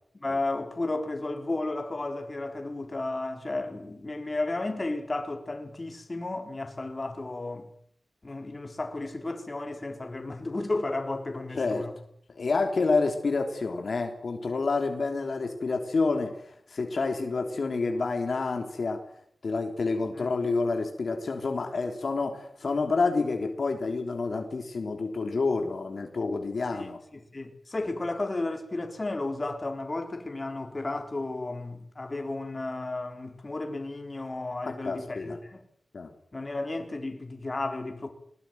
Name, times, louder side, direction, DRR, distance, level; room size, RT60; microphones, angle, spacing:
voice 1, 0.2-7.7 8.2-11.9 20.1-20.3 26.7-26.9 27.1-35.6 36.3-38.1, left 2 dB, 30° left, 4.4 m, -33 dB
voice 2, 12.3-16.4 16.7-19.0 19.4-27.0 34.7-35.4 35.9-36.1, left 3 dB, 60° left, 3.3 m, -28 dB
21.5 x 20.5 x 9.3 m
wide cardioid pair, 85°, 0 cm